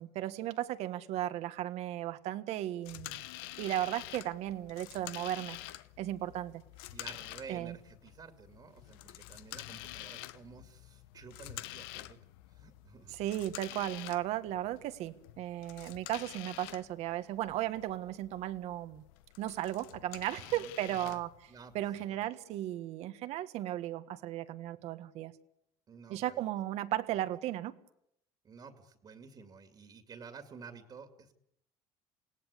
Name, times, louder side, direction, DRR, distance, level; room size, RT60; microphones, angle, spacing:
voice 1, 0.0-3.2 3.6-5.6 6.0-6.6 7.5-7.8 13.1-19.0 19.4-21.3 21.7-25.3 26.1-27.7, right 13 dB, 65° right, 11 dB, 1.6 m, -35 dB
sound 1, 2.9-22.0, left 16 dB, 90° left, 0.9 m, -48 dB
voice 2, 6.9-12.2 12.5-13.2 20.4-21.2 21.5-22.2 25.9-26.4 28.4-31.3, right 5 dB, 35° right, 7 dB, 2.4 m, -52 dB
28.5 x 17.5 x 8.4 m, 0.79 s
supercardioid pair, 110°, 12 cm